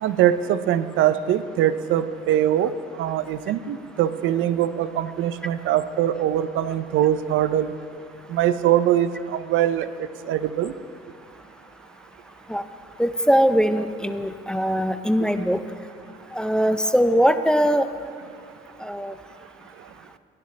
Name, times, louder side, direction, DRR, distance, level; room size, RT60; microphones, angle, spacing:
voice 1, 0.0-2.7 3.0-7.7 8.3-10.7, right 11 dB, 85° right, 14 dB, 0.5 m, -22 dB
voice 2, 13.0-15.6 16.3-17.9 18.8-19.1, equal, 5° left, 10 dB, 0.4 m, -21 dB
16.0 x 10.5 x 3.2 m, 2.3 s
cardioid pair, 90°, 20 cm